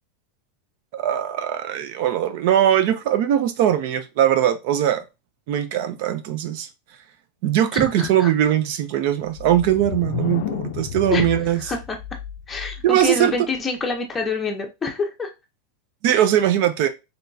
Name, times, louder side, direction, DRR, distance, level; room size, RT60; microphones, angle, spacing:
voice 1, 0.9-5.0 5.5-6.7 7.4-11.6 12.8-13.3 16.0-16.9, right 11 dB, 45° right, 0.6 m, -20 dB
voice 2, 7.7-8.3 11.1-11.2 11.5-12.0 12.5-15.3, left 4 dB, 10° left, 0.7 m, -27 dB
sound 1, 9.3-13.1, left 10 dB, 55° left, 0.5 m, -32 dB
4.3 x 3.3 x 2.7 m
supercardioid pair, 170°, 0 cm